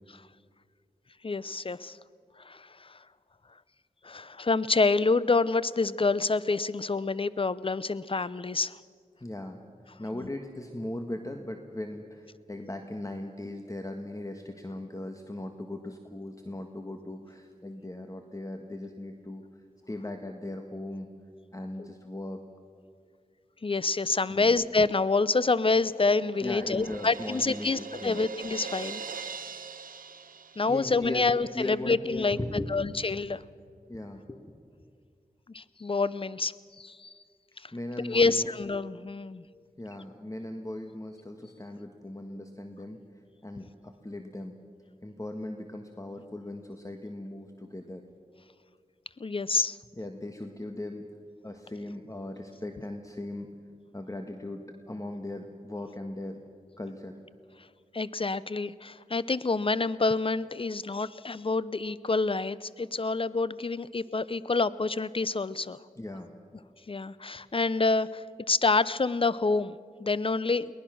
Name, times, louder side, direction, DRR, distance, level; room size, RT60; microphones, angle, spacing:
voice 1, 1.2-2.0 2.4-3.0 4.0-8.8 21.8-21.9 23.6-29.0 30.6-32.4 32.7-33.4 35.5-37.1 37.6-37.7 38.1-39.4 49.2-49.8 57.9-65.8 66.9-70.7, left 3 dB, 40° left, 18 dB, 0.7 m, -27 dB
voice 2, 9.2-9.6 10.0-19.6 19.9-21.1 21.5-22.4 24.3-24.6 26.4-28.2 30.6-31.3 31.5-32.7 33.9-34.4 37.7-38.5 39.8-43.0 43.4-44.6 45.0-48.0 49.9-51.0 51.4-53.5 53.9-56.4 56.8-57.2 65.9-66.3, left 1 dB, 25° left, 5 dB, 1.5 m, -38 dB
Crash cymbal, 25.8-31.2, right 5 dB, 90° right, 0.8 m, -42 dB
22.5 x 19.0 x 6.3 m, 2.1 s
cardioid pair, 40°, 14 cm